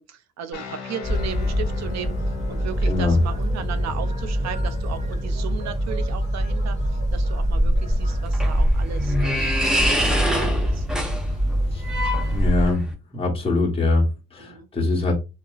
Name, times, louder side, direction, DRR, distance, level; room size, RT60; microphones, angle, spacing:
voice 1, 0.0-10.9 14.4-14.7, right 8 dB, 60° right, 0.5 m, -36 dB
sound 1, 0.5-9.4, left 3 dB, 80° left, 1.1 m, -39 dB
sound 2, 1.0-12.7, equal, 20° right, 1.3 m, -24 dB
voice 2, 2.8-3.2 11.7-11.8 12.3-12.8 13.1-15.1, left 3 dB, 20° left, 1.1 m, -22 dB
sound 3, 8.0-12.9, equal, ahead, 0.7 m, -25 dB
2.8 x 2.4 x 2.3 m
cardioid pair, 90°, 30 cm